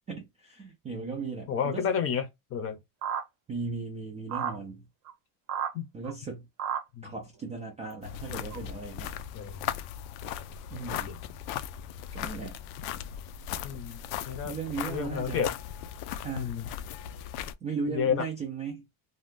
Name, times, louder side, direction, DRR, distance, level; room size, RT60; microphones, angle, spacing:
voice 1, 0.1-1.9 3.5-4.9 5.9-6.5 7.0-9.1 10.7-11.2 12.1-12.6 14.4-15.5 16.2-16.6 17.6-18.8, right 4 dB, 15° right, 0.3 m, -37 dB
voice 2, 1.5-2.3 2.5-2.8 5.7-5.9 7.0-7.1 9.3-9.7 11.1-11.2 13.6-14.0 14.3-14.5 14.9-15.5 16.3-16.7 17.9-18.2, left 7 dB, 30° left, 0.7 m, -30 dB
sound 1, 3.0-3.2 4.3-4.6 5.1-5.2 5.5-5.7 6.1-6.2 6.6-6.8 7.9-8.0 8.5-8.6, right 8 dB, 35° right, 0.7 m, -31 dB
sound 2, 8.0-17.5, left 10 dB, 70° left, 0.5 m, -38 dB
2.7 x 2.2 x 3.5 m
cardioid pair, 170°, 45 cm